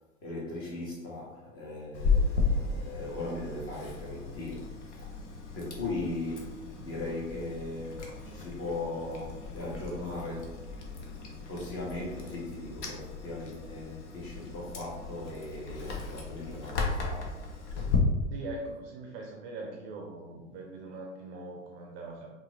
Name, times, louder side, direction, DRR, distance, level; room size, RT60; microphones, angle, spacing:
voice 1, 0.2-4.7 5.5-10.6 11.5-17.4, left 2 dB, 35° left, 1.3 m, -38 dB
Chewing mastication, 1.9-18.0, left 4 dB, 60° left, 0.8 m, -35 dB
voice 2, 18.3-22.3, right 2 dB, 30° right, 0.5 m, -41 dB
4.6 x 2.5 x 2.5 m
figure-of-eight pair, 90°, 39 cm